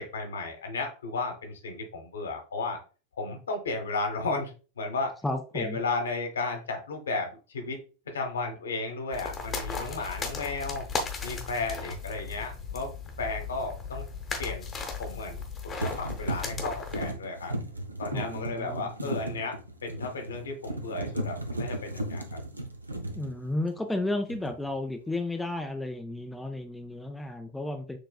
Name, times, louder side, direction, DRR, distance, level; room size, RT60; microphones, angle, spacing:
voice 1, 0.0-2.8 3.2-5.1 5.5-7.8 8.1-10.8 11.2-12.9 13.2-14.0 14.4-14.7 15.0-15.4 15.8-17.5 18.0-22.4, left 3 dB, 65° left, 4 dB, 1.2 m, -34 dB
voice 2, 5.2-5.8 18.1-19.2 23.1-28.0, left 2 dB, 5° left, 5 dB, 0.4 m, -33 dB
sound 1, 9.1-17.1, left 5 dB, 20° left, 1.0 m, -36 dB
sound 2, 11.8-12.0 15.1-15.5 15.8-24.0 24.3-24.7, right 1 dB, 80° right, 0.6 m, -36 dB
6.6 x 3.1 x 2.3 m, 0.35 s
figure-of-eight pair, 90°, 0 cm